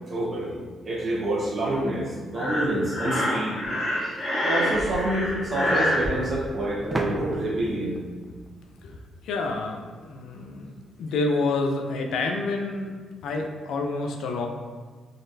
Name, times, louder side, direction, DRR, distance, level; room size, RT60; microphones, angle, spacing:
voice 1, 0.1-0.6 0.8-3.6 4.4-8.0, right 1 dB, 40° right, -6 dB, 1.1 m, -27 dB
Breathing, 2.3-6.1, left 1 dB, 20° left, 1.0 m, -26 dB
sound 1, 6.9-9.5, right 2 dB, 25° right, 0.3 m, -35 dB
voice 2, 9.2-10.7 11.0-12.9 13.2-14.5, left 3 dB, 85° left, 3 dB, 0.5 m, -28 dB
3.9 x 3.2 x 2.7 m, 1.5 s
cardioid pair, 120°, 0 cm